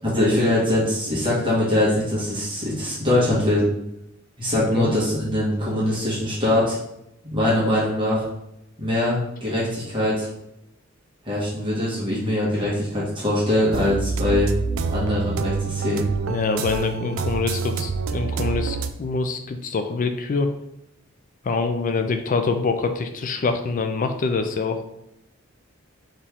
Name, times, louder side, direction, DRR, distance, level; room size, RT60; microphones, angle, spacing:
voice 1, 0.0-3.7 4.4-6.8 7.3-8.3 8.8-10.3 11.2-14.5 14.9-16.1, left 1 dB, 25° right, -7 dB, 1.3 m, -22 dB
voice 2, 4.6-4.9 16.3-20.5 21.4-24.8, left 4 dB, 40° left, 7 dB, 0.4 m, -25 dB
sound 1, 13.7-18.9, right 4 dB, 85° right, 0.4 m, -26 dB
4.3 x 3.1 x 3.6 m, 0.83 s
head